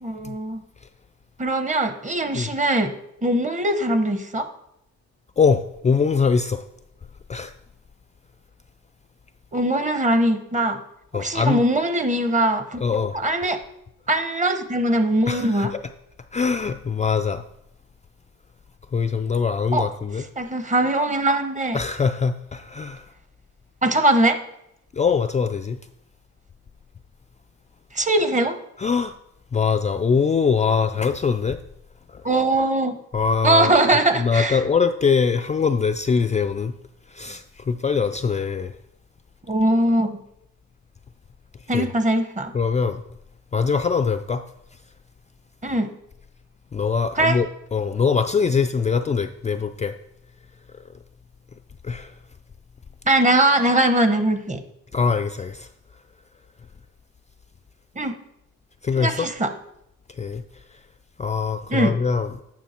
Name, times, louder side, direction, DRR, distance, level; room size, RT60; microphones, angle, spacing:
voice 1, 0.0-0.6 1.4-2.9 3.2-4.5 9.5-10.8 11.1-12.8 13.2-13.6 14.1-15.7 19.7-19.9 20.4-21.8 23.8-24.4 27.9-28.6 32.2-33.0 33.4-34.6 39.5-40.2 41.7-42.5 45.6-45.9 47.2-47.4 53.0-54.6 58.0-58.1 59.0-59.5 61.7-61.9, right 1 dB, 25° right, 1.0 m, -21 dB
voice 2, 5.4-6.6 7.3-7.5 11.1-11.6 12.8-13.2 15.3-15.8 16.3-17.4 18.9-20.2 21.7-23.1 24.9-25.8 28.8-29.2 29.5-31.6 32.1-32.3 33.1-33.7 34.2-36.7 37.1-38.8 41.7-41.9 42.5-43.0 43.5-44.4 46.7-50.0 50.7-50.8 51.8-52.1 54.9-55.7 58.8-59.3 60.1-60.8 61.2-62.3, left 5 dB, 25° left, 0.4 m, -23 dB
9.5 x 5.8 x 4.4 m
cardioid pair, 90°, 30 cm